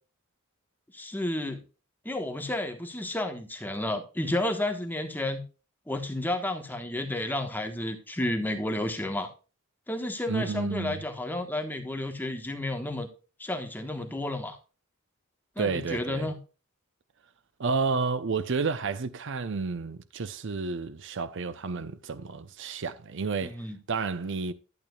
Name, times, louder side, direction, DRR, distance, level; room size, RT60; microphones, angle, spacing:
voice 1, 0.9-1.6 2.0-5.4 5.9-9.3 9.9-13.1 13.4-14.6 15.6-16.4 23.4-23.8, left 1 dB, 10° left, 1.2 m, -31 dB
voice 2, 10.3-11.0 15.6-16.3 17.6-23.5 23.9-24.5, right 4 dB, 60° right, 0.6 m, -31 dB
12.0 x 8.7 x 2.3 m
head